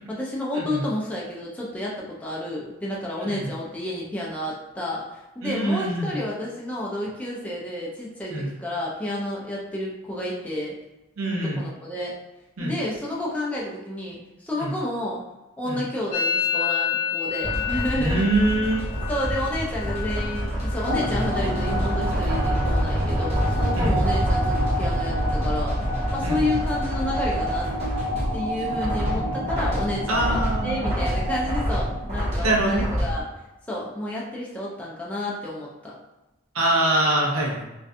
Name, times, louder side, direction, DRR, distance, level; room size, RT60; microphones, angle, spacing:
voice 1, 0.1-10.7 11.3-12.1 12.6-15.2 15.6-18.3 19.1-27.7 28.3-33.3 33.7-35.9, left 1 dB, 5° left, -5 dB, 0.3 m, -30 dB
voice 2, 5.4-6.2 8.3-8.5 11.2-11.6 12.6-12.7 14.6-14.7 15.6-15.8 18.0-18.9 23.8-24.0 26.2-26.6 30.1-30.9 32.4-32.9 36.5-37.6, right 1 dB, 70° right, -3 dB, 0.6 m, -24 dB
Musical instrument, 16.1-23.8 24.0-24.6 24.9-25.4 25.7-27.7, left 8 dB, 90° left, 0.3 m, -32 dB
sound 1, 17.4-33.2, equal, 30° right, 0.8 m, -27 dB
sound 2, 20.9-32.2, right 1 dB, 55° right, 1.0 m, -30 dB
2.5 x 2.2 x 2.5 m, 1.0 s
head